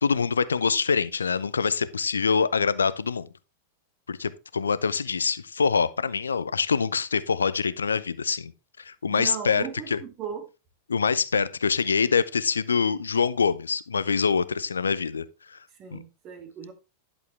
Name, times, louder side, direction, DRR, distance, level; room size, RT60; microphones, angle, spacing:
voice 1, 0.0-3.3 4.1-8.5 8.8-9.6 9.9-10.0 10.9-15.2 15.5-15.6 15.9-16.0, left 5 dB, 75° left, 0.5 m, -25 dB
voice 2, 9.1-10.4 15.7-16.7, right 7 dB, 35° right, 2.3 m, -37 dB
11.0 x 7.0 x 3.3 m
figure-of-eight pair, 90°, 0 cm